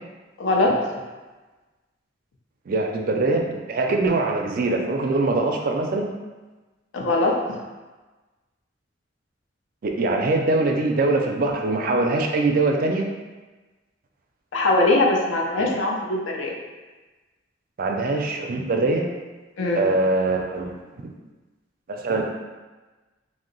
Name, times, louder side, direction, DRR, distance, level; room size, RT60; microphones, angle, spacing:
voice 1, 0.4-0.8 6.9-7.3 14.5-16.6 19.6-19.8, left 2 dB, 85° left, -1 dB, 0.5 m, -21 dB
voice 2, 2.7-6.1 9.8-13.1 15.6-15.7 17.8-19.1 19.7-21.1 21.9-22.2, right 2 dB, 50° right, 2 dB, 0.4 m, -23 dB
2.7 x 2.0 x 3.8 m, 1.2 s
head